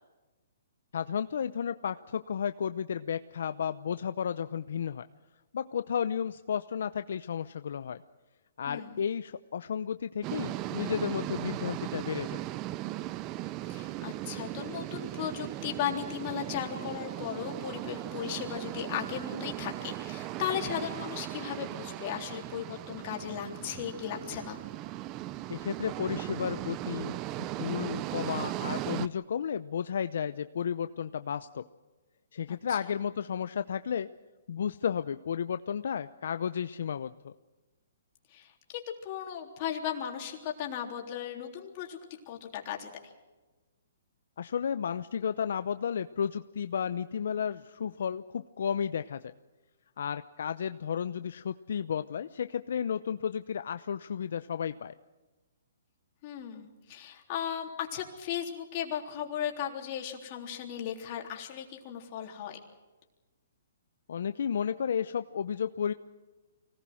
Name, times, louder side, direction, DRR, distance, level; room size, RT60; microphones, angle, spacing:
voice 1, 0.9-5.0 5.5-8.0 8.6-12.4 25.5-27.2 27.6-31.6 32.3-34.1 34.5-37.3 44.4-49.2 50.0-54.9 64.1-65.9, left 7 dB, 65° left, 11 dB, 0.7 m, -33 dB
voice 2, 8.7-9.1 13.7-24.6 32.5-32.9 38.3-42.0 42.3-43.1 56.2-62.6, left 9 dB, 35° left, 1 dB, 3.6 m, -36 dB
sound 1, 10.2-29.1, right 15 dB, 25° right, 0.6 m, -38 dB
25.0 x 19.0 x 6.3 m, 1.2 s
hypercardioid pair, 160°, 0 cm